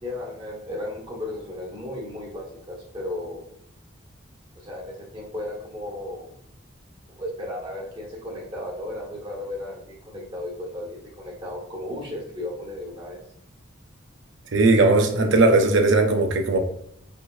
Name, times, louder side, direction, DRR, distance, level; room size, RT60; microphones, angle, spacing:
voice 1, 0.0-3.4 4.5-6.3 7.1-13.2, left 1 dB, 25° right, -4 dB, 1.5 m, -35 dB
voice 2, 14.5-16.6, right 2 dB, 70° right, 5 dB, 0.6 m, -18 dB
5.1 x 3.1 x 2.6 m, 0.74 s
head